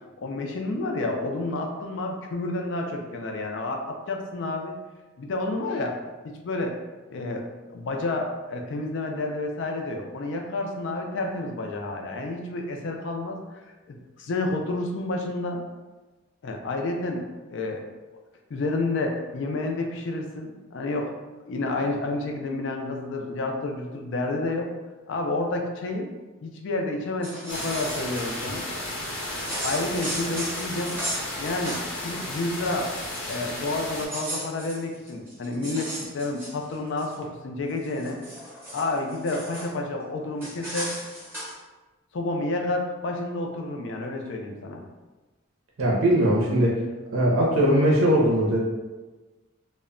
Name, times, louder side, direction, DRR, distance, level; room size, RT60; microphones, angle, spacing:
voice 1, 0.2-4.8 5.2-6.0 6.4-6.8 7.1-7.4 7.7-13.4 13.9-15.6 16.4-17.2 17.5-17.8 18.5-21.2 21.5-24.7 25.1-26.1 26.4-28.7 29.6-31.0 31.4-32.9 33.2-38.2 38.7-40.9 42.1-44.8, left 2 dB, 60° left, 2 dB, 0.4 m, -30 dB
sound 1, 27.1-28.2 29.2-32.1 32.4-32.5 32.9-33.5 33.9-37.2 37.7-39.7 40.4-41.5, equal, 10° right, 0.7 m, -36 dB
sound 2, 27.5-34.1, left 1 dB, 75° left, 0.7 m, -34 dB
voice 2, 45.8-46.8 47.1-48.6, equal, 80° right, -3 dB, 0.5 m, -20 dB
2.1 x 2.1 x 3.6 m, 1.2 s
head